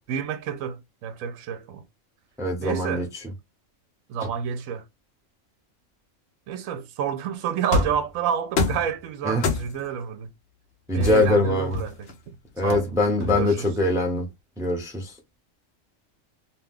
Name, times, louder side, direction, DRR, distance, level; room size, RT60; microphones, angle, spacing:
voice 1, 0.1-1.8 2.6-3.1 4.1-4.8 6.5-10.3 10.9-12.1 12.6-12.9 13.2-13.7, right 8 dB, 80° right, 1.0 m, -29 dB
voice 2, 2.4-3.0 9.2-9.4 10.9-11.8 12.6-14.2 14.6-15.0, left 2 dB, 5° right, 0.7 m, -22 dB
sound 1, 7.7-8.1 8.6-8.9 9.4-9.9 11.0-12.1 12.7-13.7, left 3 dB, 60° left, 0.9 m, -27 dB
2.7 x 2.2 x 3.5 m
omnidirectional pair, 1.4 m